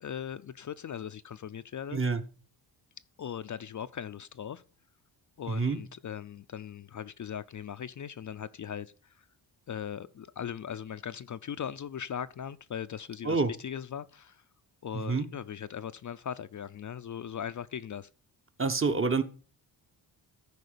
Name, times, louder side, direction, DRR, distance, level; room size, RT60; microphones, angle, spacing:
voice 1, 0.0-2.0 3.2-4.6 5.4-9.3 9.7-14.4 14.8-18.1, left 8 dB, 45° left, 0.5 m, -39 dB
voice 2, 5.5-5.8 13.2-13.5 14.9-15.3 18.6-19.2, right 4 dB, 30° right, 1.1 m, -27 dB
13.5 x 4.9 x 6.7 m
cardioid pair, 105°, 44 cm